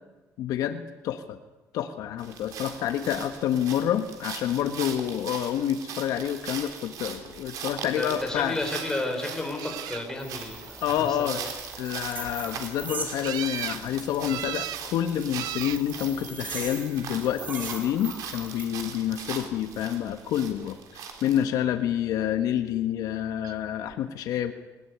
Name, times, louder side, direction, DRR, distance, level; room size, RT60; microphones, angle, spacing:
voice 1, 0.4-1.4 1.7-8.6 10.8-11.4 11.8-24.5, left 10 dB, 75° left, 8 dB, 1.4 m, -28 dB
sound 1, 2.2-21.4, right 7 dB, 70° right, 3.7 m, -41 dB
voice 2, 7.9-11.5, left 2 dB, 10° left, 2 dB, 4.7 m, -32 dB
sound 2, 8.6-9.0 9.6-10.3 13.2-13.8 14.2-14.8 15.3-15.8 16.7-17.2 23.4-23.5 23.9-24.0, right 13 dB, 85° right, 0.9 m, -36 dB
sound 3, 10.2-18.6, right 3 dB, 30° right, 4.5 m, -41 dB
20.0 x 19.5 x 9.5 m, 1.1 s
cardioid pair, 170°, 6 cm